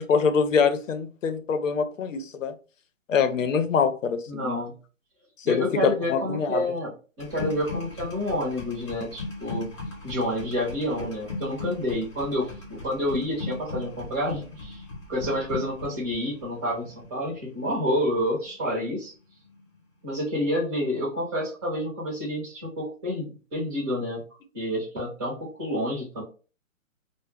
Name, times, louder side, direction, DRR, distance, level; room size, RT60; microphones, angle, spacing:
voice 1, 0.0-2.5 3.1-4.6 5.5-6.6, left 6 dB, 70° left, 8 dB, 0.6 m, -24 dB
voice 2, 4.3-4.7 5.4-6.9 7.2-9.7 10.0-14.8 15.1-19.1 20.0-24.2 24.5-26.2, left 1 dB, 20° right, -7 dB, 0.7 m, -29 dB
sound 1, 7.2-19.1 19.3-19.7, left 2 dB, 25° left, 0.6 m, -38 dB
2.1 x 2.1 x 3.3 m, 0.35 s
hypercardioid pair, 155°, 40 cm